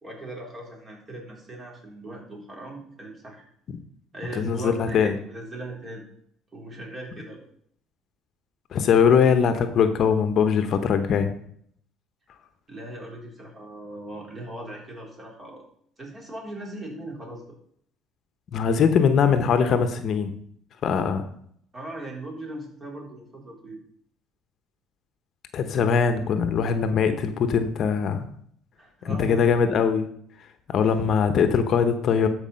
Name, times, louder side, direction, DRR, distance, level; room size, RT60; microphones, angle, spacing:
voice 1, 0.0-3.4 4.1-6.0 6.5-7.5 12.7-15.6 16.0-17.4 21.7-23.8 28.8-29.5 30.8-30.9, right 1 dB, 25° right, -1 dB, 4.0 m, -39 dB
voice 2, 4.4-5.1 8.7-11.3 18.5-20.3 20.8-21.3 25.5-28.3 29.0-30.1 30.7-32.3, left 6 dB, 50° left, 9 dB, 1.0 m, -21 dB
12.5 x 4.9 x 5.6 m, 0.65 s
cardioid pair, 100°, 0 cm